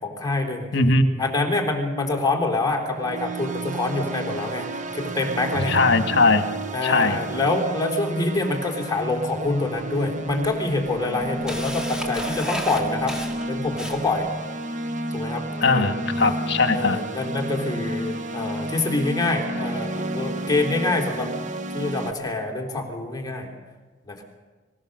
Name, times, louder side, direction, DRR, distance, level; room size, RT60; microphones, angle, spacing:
voice 1, 0.0-0.7 1.2-5.8 6.7-13.2 13.5-14.3 15.1-15.9 16.7-21.3 21.7-23.5 24.1-24.2, left 2 dB, 20° left, 2 dB, 3.3 m, -26 dB
voice 2, 0.7-1.1 5.7-6.4 6.8-7.2 15.6-17.0, left 3 dB, 55° left, 7 dB, 1.7 m, -19 dB
sound 1, 2.9-22.1, right 2 dB, 40° right, 1.1 m, -31 dB
Camera, 9.3-9.4 10.3-10.4 10.8-14.3, equal, 5° right, 2.4 m, -33 dB
25.5 x 16.5 x 6.5 m, 1.4 s
head